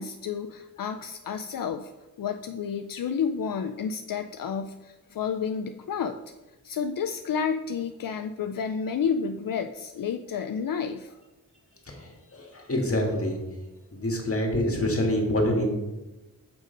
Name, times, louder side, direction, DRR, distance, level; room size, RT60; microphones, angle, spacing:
voice 1, 0.0-1.9 2.2-6.2 6.6-11.1, left 6 dB, 80° left, 7 dB, 0.5 m, -30 dB
voice 2, 11.9-13.4 13.9-15.7, left 1 dB, 45° left, 1 dB, 2.0 m, -26 dB
7.0 x 6.4 x 5.1 m, 1.1 s
wide cardioid pair, 110°, 33 cm